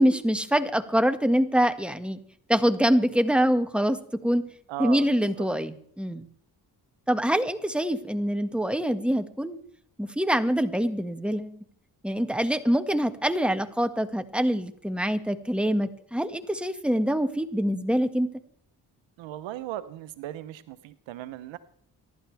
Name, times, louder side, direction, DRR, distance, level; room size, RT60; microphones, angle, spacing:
voice 1, 0.0-2.2 2.5-4.4 4.8-6.2 7.1-9.6 10.0-11.5 12.0-18.3, equal, ahead, 8 dB, 1.8 m, -25 dB
voice 2, 4.7-5.5 19.2-21.6, right 13 dB, 90° right, 14 dB, 0.9 m, -37 dB
25.0 x 11.5 x 3.4 m, 0.64 s
supercardioid pair, 50°, 44 cm